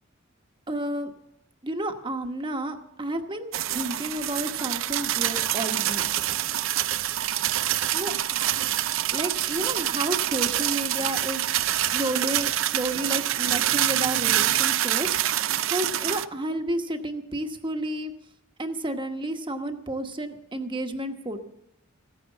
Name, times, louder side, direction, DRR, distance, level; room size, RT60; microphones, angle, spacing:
voice 1, 0.7-1.1 1.6-6.1 7.9-8.5 9.1-18.1 18.6-21.4, right 1 dB, 25° right, 6 dB, 1.1 m, -31 dB
sound 1, 3.5-16.3, right 12 dB, 70° right, 0.5 m, -26 dB
15.5 x 9.6 x 7.2 m, 0.86 s
head